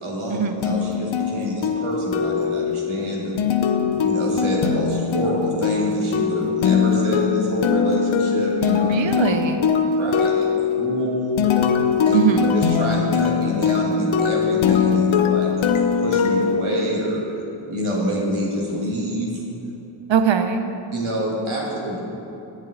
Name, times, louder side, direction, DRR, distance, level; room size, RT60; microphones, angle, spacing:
voice 1, 0.0-3.4 4.0-8.9 10.0-11.4 12.1-17.2 17.7-19.4 20.9-22.0, equal, 85° right, -3 dB, 1.6 m, -27 dB
sound 1, 0.6-17.3, left 6 dB, 80° left, 0.6 m, -21 dB
voice 2, 8.9-9.8 12.1-12.5 20.1-20.7, right 7 dB, 70° right, 8 dB, 0.7 m, -21 dB
8.4 x 8.3 x 3.8 m, 2.9 s
cardioid pair, 45°, 48 cm